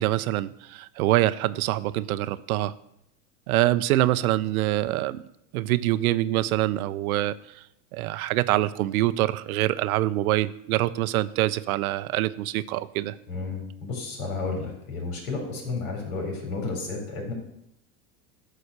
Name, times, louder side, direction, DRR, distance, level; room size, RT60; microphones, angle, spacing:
voice 1, 0.0-2.7 3.5-5.2 5.5-7.3 7.9-13.2, right 15 dB, 90° right, 16 dB, 0.6 m, -25 dB
voice 2, 13.3-17.3, left 3 dB, 85° left, 1 dB, 3.7 m, -32 dB
11.5 x 4.2 x 6.6 m, 0.79 s
supercardioid pair, 110°, 42 cm